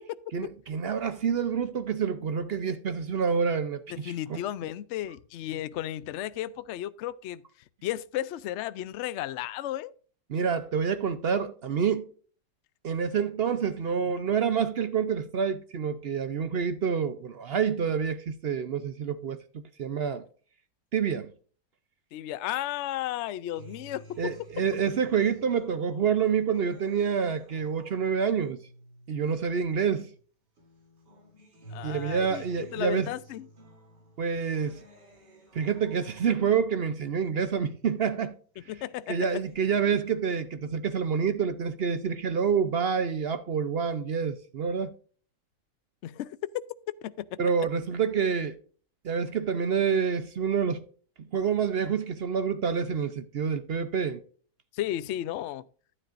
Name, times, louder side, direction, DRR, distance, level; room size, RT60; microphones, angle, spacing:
voice 1, 0.3-4.4 10.3-12.1 12.8-20.2 20.9-21.3 24.2-28.6 29.1-30.1 31.8-33.1 34.2-34.8 35.5-38.3 39.1-44.9 47.4-48.6 49.0-50.8 51.3-54.2, right 6 dB, 65° right, 0.6 m, -27 dB
voice 2, 3.9-7.4 7.8-9.9 22.1-24.4 31.7-33.5 38.7-39.4 46.0-46.4 47.0-47.4 54.7-55.6, left 13 dB, 85° left, 0.6 m, -34 dB
Acoustic guitar, 23.5-30.2 30.6-38.2 38.6-39.5, right 1 dB, 90° right, 3.5 m, -52 dB
12.0 x 9.8 x 2.5 m
omnidirectional pair, 1.8 m